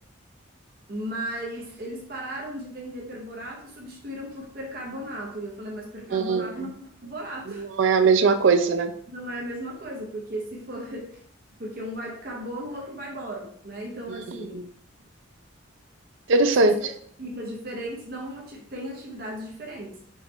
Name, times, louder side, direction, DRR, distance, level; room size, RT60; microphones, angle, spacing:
voice 1, 0.9-7.7 9.1-11.2 11.6-14.6 16.6-16.7 17.2-20.0, equal, 50° right, -1 dB, 0.9 m, -36 dB
voice 2, 6.1-6.5 7.5-8.9 16.3-16.8, right 4 dB, 70° right, 9 dB, 0.4 m, -20 dB
4.6 x 3.2 x 3.2 m, 0.63 s
head